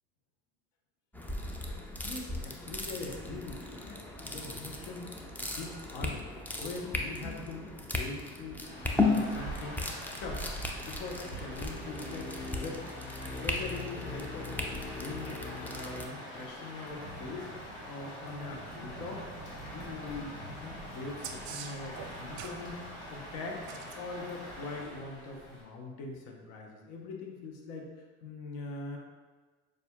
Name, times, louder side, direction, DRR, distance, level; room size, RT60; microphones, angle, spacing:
sound 1, 1.1-16.1, left 3 dB, 5° left, 0.3 m, -36 dB
voice 1, 2.0-6.3 6.6-8.6 8.9-10.5 10.8-12.9 13.4-19.3 19.6-22.8 23.1-23.6 24.0-29.0, left 3 dB, 65° left, 0 dB, 0.8 m, -42 dB
Rain, 8.6-25.6, equal, 85° left, 1.2 m, -44 dB
sound 2, 21.2-22.6 23.6-24.0 26.1-26.2, right 7 dB, 55° right, 0.5 m, -43 dB
6.7 x 2.5 x 2.2 m, 1.3 s
hypercardioid pair, 85°, 33 cm